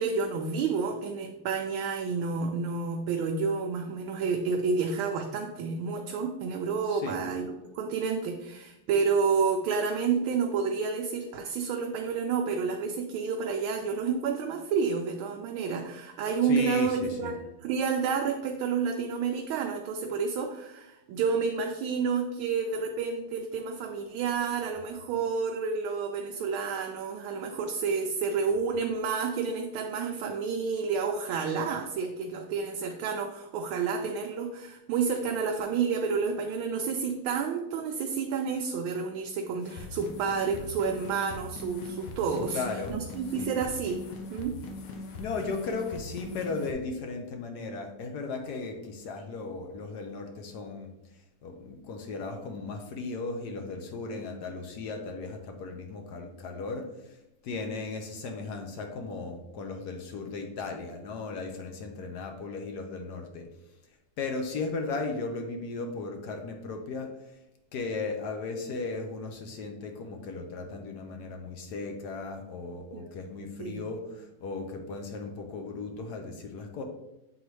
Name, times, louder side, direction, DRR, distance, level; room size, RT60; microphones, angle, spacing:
voice 1, 0.0-17.3 17.6-42.6 42.9-44.0 44.3-44.6 72.9-73.3 73.6-73.8, right 5 dB, 80° right, 3 dB, 1.4 m, -30 dB
voice 2, 6.9-7.2 16.4-17.3 42.5-43.0 43.3-43.5 45.2-50.9 51.4-57.2 57.4-63.5 64.2-67.1 67.7-76.8, left 4 dB, 65° left, 4 dB, 1.0 m, -36 dB
sound 1, 39.6-46.7, left 3 dB, 85° left, 1.7 m, -41 dB
7.9 x 3.9 x 3.2 m, 0.92 s
omnidirectional pair, 2.3 m